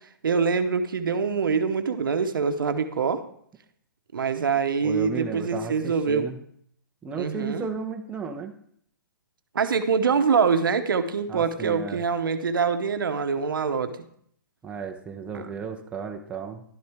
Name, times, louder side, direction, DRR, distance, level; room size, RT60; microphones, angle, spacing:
voice 1, 0.2-3.2 4.1-6.3 7.1-7.7 9.5-13.9 15.3-15.5, right 5 dB, 80° right, 9 dB, 0.8 m, -24 dB
voice 2, 4.8-6.4 7.0-8.5 11.3-12.0 14.6-16.6, right 5 dB, 10° right, 3 dB, 0.7 m, -34 dB
11.5 x 7.7 x 3.5 m, 0.65 s
hypercardioid pair, 140°, 11 cm